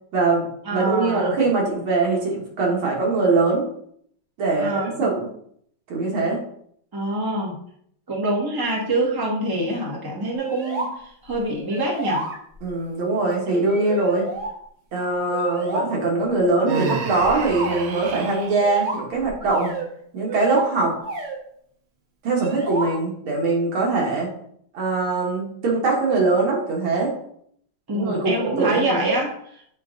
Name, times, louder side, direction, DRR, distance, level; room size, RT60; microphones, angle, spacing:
voice 1, 0.1-3.7 4.4-5.3 5.9-6.4 12.6-14.3 14.9-19.7 20.1-21.0 22.2-24.3 24.7-27.2 27.9-29.1, right 3 dB, 75° right, -2 dB, 2.4 m, -22 dB
voice 2, 0.6-1.3 4.6-4.9 6.9-7.5 8.1-12.2 27.9-29.6, right 1 dB, 15° right, -3 dB, 1.2 m, -25 dB
sound 1, 10.3-10.9 11.3-11.4 11.7-12.7 13.5-14.5 15.3-15.9 16.6-17.9 18.6-19.9 20.3-20.7 21.0-21.4 22.3-22.9, right 3 dB, 40° right, 0.8 m, -30 dB
Human voice, 16.7-18.5, right 4 dB, 60° right, 1.2 m, -30 dB
7.8 x 3.5 x 3.8 m, 0.66 s
omnidirectional pair, 2.3 m